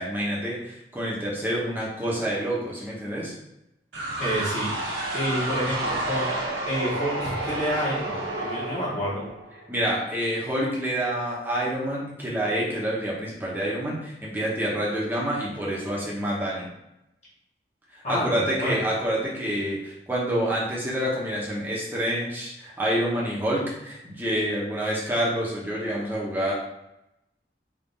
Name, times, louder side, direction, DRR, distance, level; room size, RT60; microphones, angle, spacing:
voice 1, 0.0-3.3 9.7-16.7 18.1-26.5, equal, 10° right, -5 dB, 1.0 m, -27 dB
sound 1, 3.9-9.7, right 1 dB, 90° right, 1.2 m, -30 dB
voice 2, 4.2-4.7 5.1-9.2 18.0-18.8, equal, 40° left, -8 dB, 1.3 m, -29 dB
3.6 x 2.7 x 4.0 m, 0.88 s
head